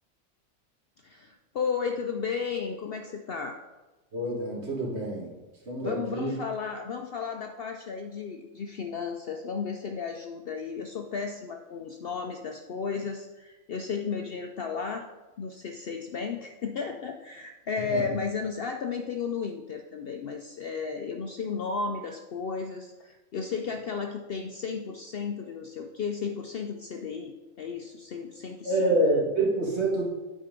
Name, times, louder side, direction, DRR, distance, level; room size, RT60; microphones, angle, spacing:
voice 1, 1.0-3.6 5.8-15.1 15.4-28.9, left 5 dB, 60° left, 4 dB, 0.6 m, -34 dB
voice 2, 4.1-5.3 5.7-6.3 17.9-18.1 28.6-30.1, right 1 dB, 55° right, -3 dB, 2.2 m, -27 dB
9.0 x 4.5 x 5.1 m, 1.1 s
omnidirectional pair, 1.4 m